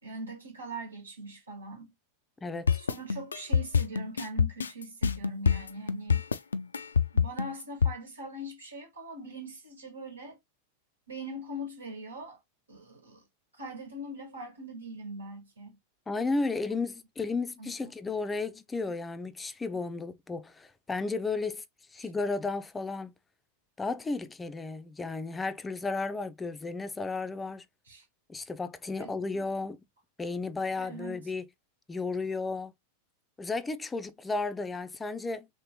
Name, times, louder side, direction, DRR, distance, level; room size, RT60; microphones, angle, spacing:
voice 1, 0.0-1.9 2.8-6.2 7.1-10.4 11.1-12.4 12.7-13.2 13.6-15.8 17.6-17.9 27.9-28.0 29.0-29.4 30.8-31.2, right 1 dB, 90° right, 1.5 m, -42 dB
voice 2, 2.4-2.8 16.1-21.6 21.9-23.1 23.8-27.6 28.3-29.8 30.2-31.5 31.9-32.7 33.4-35.5, left 3 dB, 15° left, 0.4 m, -33 dB
sound 1, 2.7-7.9, left 6 dB, 80° left, 0.3 m, -25 dB
3.1 x 3.1 x 2.8 m
figure-of-eight pair, 90°, 0 cm